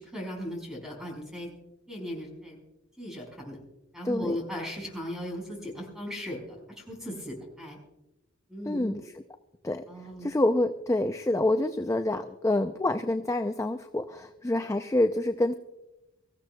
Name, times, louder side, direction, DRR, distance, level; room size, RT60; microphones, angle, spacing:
voice 1, 0.0-1.5 1.9-2.6 3.0-3.6 3.9-7.8 8.5-8.9 9.9-10.3, equal, 5° right, 0 dB, 4.9 m, -37 dB
voice 2, 4.0-4.4 8.7-9.1 9.6-9.9 10.2-15.5, left 1 dB, 15° left, 7 dB, 0.5 m, -27 dB
25.0 x 14.5 x 2.3 m, 0.95 s
head